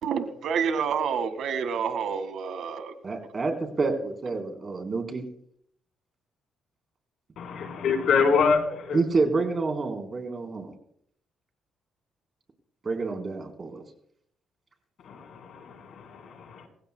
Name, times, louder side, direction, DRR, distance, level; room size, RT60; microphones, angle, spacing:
voice 1, 0.0-2.9, right 6 dB, 70° right, 10 dB, 1.7 m, -28 dB
voice 2, 3.0-5.2 8.9-10.7 12.8-13.8, right 3 dB, 35° right, 4 dB, 3.8 m, -28 dB
voice 3, 7.4-9.0 15.0-16.7, left 5 dB, 70° left, 4 dB, 3.8 m, -26 dB
25.5 x 15.5 x 2.2 m, 0.68 s
cardioid pair, 90°, 0 cm